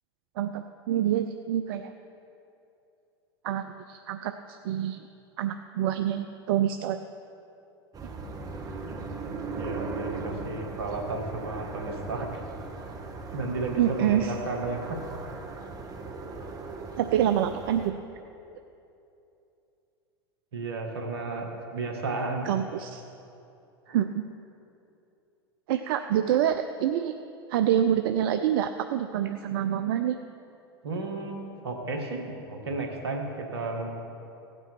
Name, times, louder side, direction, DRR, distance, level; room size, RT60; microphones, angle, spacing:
voice 1, 0.4-1.9 3.4-5.1 5.4-7.0 13.8-14.3 17.0-18.0 22.4-23.0 23.9-24.2 25.7-27.1 27.5-30.2, right 10 dB, 60° right, 8 dB, 0.5 m, -26 dB
sound 1, 7.9-17.9, right 3 dB, 30° right, 1.3 m, -38 dB
voice 2, 9.5-12.4 13.3-15.0 20.5-22.5 23.9-24.0 30.8-33.9, right 3 dB, 80° right, 3 dB, 1.9 m, -33 dB
16.5 x 8.8 x 4.6 m, 2.8 s
hypercardioid pair, 90°, 13 cm